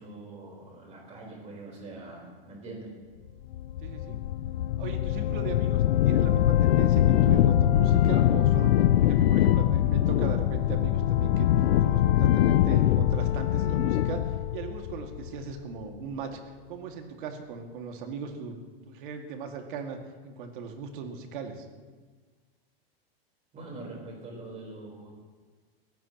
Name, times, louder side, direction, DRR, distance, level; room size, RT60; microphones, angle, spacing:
voice 1, 0.0-2.9 23.5-25.1, right 2 dB, 20° right, -1 dB, 4.1 m, -43 dB
sound 1, 3.5-15.6, left 12 dB, 75° left, 0.6 m, -23 dB
voice 2, 3.8-4.2 4.8-8.7 9.0-11.5 11.8-14.2 14.5-18.6 18.9-20.0 20.2-21.7, right 6 dB, 55° right, 3 dB, 2.1 m, -38 dB
21.5 x 16.5 x 3.0 m, 1.5 s
supercardioid pair, 160°, 31 cm